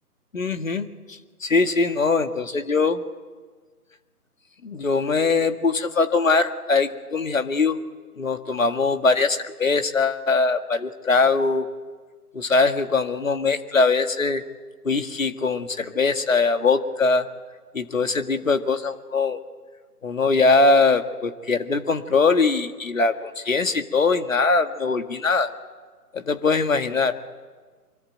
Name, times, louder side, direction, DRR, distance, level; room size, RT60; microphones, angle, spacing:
voice 1, 0.3-0.9 1.4-3.0 4.6-7.8 8.2-11.7 12.3-14.4 14.8-17.3 17.7-19.4 20.0-25.5 26.1-27.2, left 4 dB, 55° left, 9 dB, 1.9 m, -21 dB
24.5 x 23.0 x 9.1 m, 1.5 s
figure-of-eight pair, 150°, 47 cm